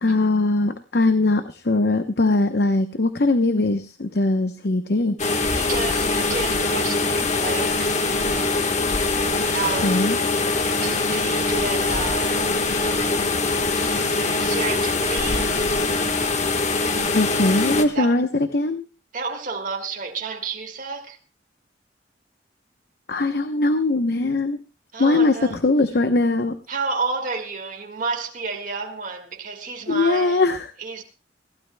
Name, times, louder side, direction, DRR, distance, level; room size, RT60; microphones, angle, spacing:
voice 1, 0.0-5.2 9.8-10.2 17.1-18.3 18.5-18.8 23.1-24.6 25.0-26.5 29.9-30.6, left 2 dB, 60° left, 0.8 m, -21 dB
sound 1, 5.2-17.8, left 3 dB, 40° left, 1.3 m, -23 dB
voice 2, 5.6-8.0 9.5-10.0 10.8-12.5 12.8-15.6 17.9-18.2 19.1-21.2 24.9-25.6 26.7-30.5 30.8-31.0, right 4 dB, 45° right, 1.8 m, -31 dB
21.5 x 16.0 x 2.2 m
head